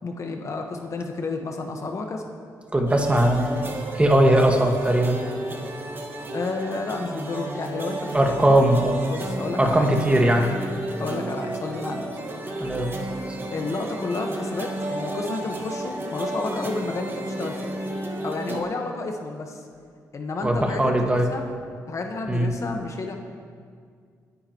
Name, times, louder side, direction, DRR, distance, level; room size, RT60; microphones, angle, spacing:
voice 1, 0.0-2.2 6.3-8.6 9.1-9.9 11.0-12.1 13.5-17.7 18.2-19.6 20.1-21.4 21.9-23.2, left 3 dB, 50° left, 3 dB, 1.4 m, -31 dB
voice 2, 2.7-3.5 3.9-5.2 8.1-9.0 9.6-10.5 12.6-12.9 20.4-21.3 22.3-22.5, right 1 dB, 15° right, 2 dB, 1.7 m, -19 dB
sound 1, 2.9-18.6, right 1 dB, 35° right, 1.8 m, -32 dB
25.0 x 9.7 x 3.1 m, 2.1 s
cardioid pair, 70°, 7 cm